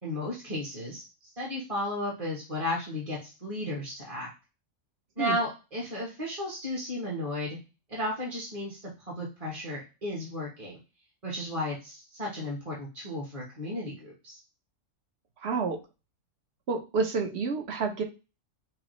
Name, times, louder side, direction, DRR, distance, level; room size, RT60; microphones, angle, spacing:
voice 1, 0.0-4.3 5.2-7.6 7.9-10.8 11.2-14.4, left 1 dB, 30° right, -4 dB, 1.1 m, -34 dB
voice 2, 15.4-15.8 16.7-18.0, right 4 dB, 60° right, 3 dB, 1.1 m, -29 dB
6.0 x 2.0 x 3.1 m, 0.29 s
omnidirectional pair, 1.3 m